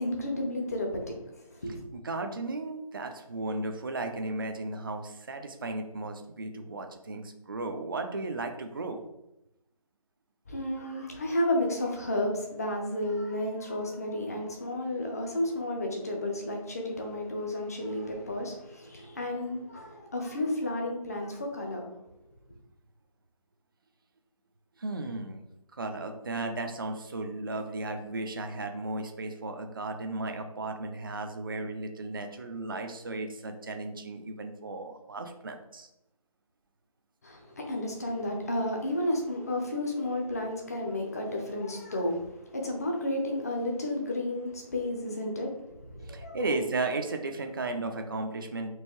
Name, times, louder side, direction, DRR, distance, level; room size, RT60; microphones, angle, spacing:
voice 1, 0.0-1.8 10.5-22.0 37.2-46.4, left 1 dB, 25° left, 1 dB, 0.6 m, -32 dB
voice 2, 1.9-9.0 24.8-25.4 25.7-35.9 46.0-48.7, right 2 dB, 35° right, 5 dB, 0.4 m, -35 dB
4.5 x 2.7 x 3.0 m, 0.88 s
figure-of-eight pair, 165°, 19 cm